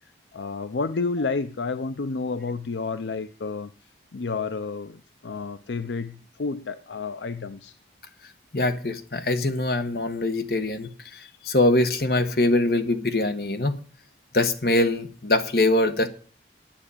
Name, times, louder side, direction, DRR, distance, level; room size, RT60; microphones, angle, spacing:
voice 1, 0.0-3.7 4.1-7.8, left 4 dB, 90° left, 0.6 m, -30 dB
voice 2, 8.5-13.8 14.3-16.1, left 2 dB, 60° left, 1.3 m, -23 dB
10.5 x 6.9 x 8.5 m
head